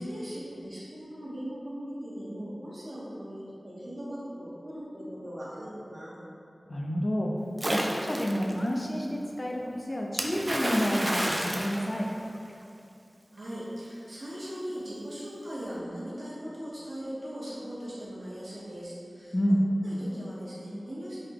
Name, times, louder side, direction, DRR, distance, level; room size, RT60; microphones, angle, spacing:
voice 1, 0.0-6.1 13.3-19.3 19.8-21.2, equal, 75° right, -8 dB, 1.0 m, -39 dB
voice 2, 6.7-7.3 7.6-12.1 19.3-19.6, equal, 40° left, 0 dB, 0.4 m, -29 dB
Splash splatter, 7.6-8.5 10.2-12.6, right 1 dB, 30° right, 0.3 m, -30 dB
3.7 x 2.2 x 3.4 m, 2.5 s
wide cardioid pair, 45°, 0 cm